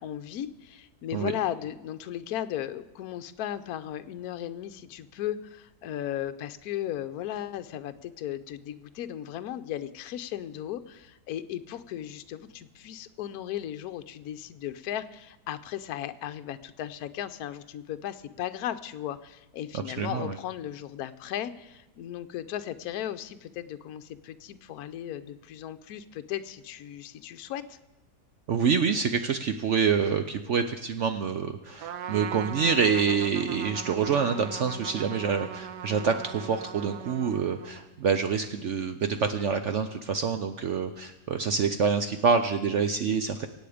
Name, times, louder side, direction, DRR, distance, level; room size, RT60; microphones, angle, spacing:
voice 1, 0.0-27.8, left 11 dB, 70° left, 10 dB, 1.1 m, -36 dB
voice 2, 19.7-20.3 28.5-43.5, right 6 dB, 60° right, 8 dB, 0.8 m, -26 dB
Trumpet, 31.8-38.0, right 8 dB, 80° right, 1.4 m, -39 dB
23.5 x 8.6 x 5.0 m, 0.98 s
omnidirectional pair, 1.8 m